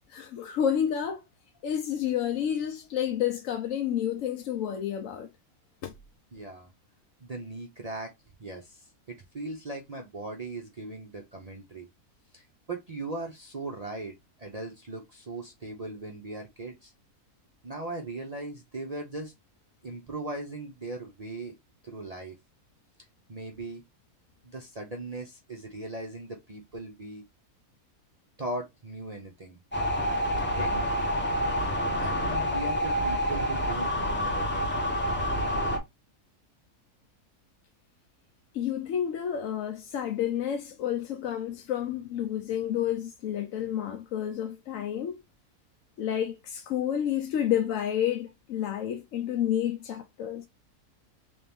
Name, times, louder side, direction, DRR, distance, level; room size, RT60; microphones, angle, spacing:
voice 1, 0.1-1.3 1.6-5.3 5.8-5.9 38.5-45.1 46.0-50.5, left 10 dB, 65° left, 0.9 m, -30 dB
voice 2, 6.3-6.7 7.2-8.1 8.4-11.9 12.3-16.9 17.6-19.3 19.8-21.5 21.8-22.3 23.3-23.8 24.4-27.2 28.4-29.6 30.5-30.8 31.9-34.7 35.7-35.8, right 2 dB, 45° right, 0.5 m, -39 dB
sound 1, 29.7-35.8, equal, 10° left, 0.6 m, -28 dB
3.5 x 2.9 x 3.4 m
omnidirectional pair, 1.6 m